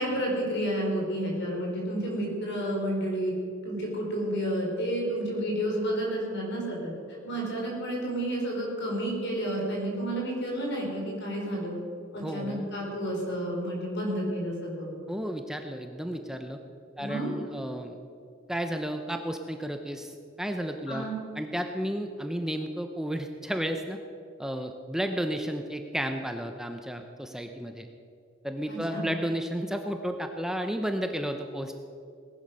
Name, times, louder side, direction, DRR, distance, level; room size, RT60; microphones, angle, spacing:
voice 1, 0.0-3.3 3.6-6.9 7.2-11.8 12.1-14.9 17.0-17.4 20.9-21.2 28.7-29.1, right 1 dB, 60° left, -1 dB, 5.0 m, -30 dB
voice 2, 12.2-12.7 15.1-16.6 17.0-18.0 18.5-21.1 21.4-24.0 24.4-27.9 28.4-31.7, equal, 5° right, 5 dB, 0.7 m, -32 dB
18.5 x 11.0 x 6.4 m, 2.5 s
head